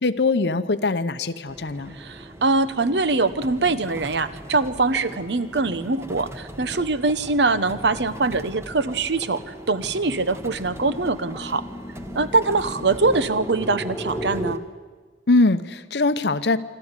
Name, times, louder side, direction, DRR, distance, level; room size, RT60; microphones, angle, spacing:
voice 1, 0.0-1.9 15.3-16.6, left 3 dB, 65° left, 12 dB, 0.8 m, -22 dB
sound 1, 1.5-14.6, right 1 dB, 15° right, 1.2 m, -41 dB
voice 2, 1.9-11.6 12.1-14.6, right 3 dB, 65° right, 13 dB, 1.0 m, -23 dB
sound 2, 5.9-14.5, equal, 10° left, 1.1 m, -37 dB
26.0 x 13.0 x 9.7 m, 1.4 s
head